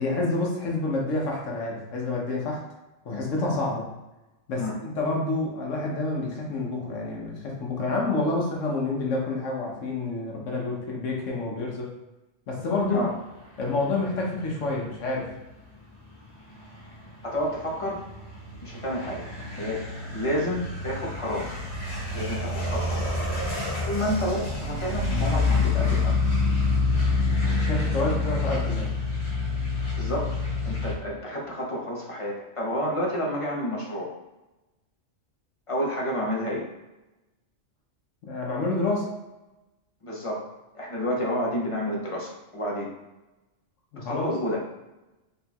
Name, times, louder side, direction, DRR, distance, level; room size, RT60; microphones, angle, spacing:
voice 1, 0.0-2.6 3.0-3.9 4.5-11.9 12.5-13.1 13.6-15.3 27.3-28.9 38.2-39.1 43.9-44.3, left 2 dB, 75° left, -2 dB, 1.2 m, -28 dB
sound 1, 14.4-30.9, left 3 dB, 55° left, 1.9 m, -28 dB
voice 2, 17.2-18.0 18.6-19.2 19.6-19.8 20.1-21.5 22.1-23.0 23.8-26.2 30.0-30.3 30.6-34.1 35.7-36.6 40.0-40.4 40.7-42.9 44.0-44.6, equal, 30° left, -3 dB, 0.8 m, -30 dB
4.3 x 3.8 x 2.3 m, 1.0 s
omnidirectional pair, 1.3 m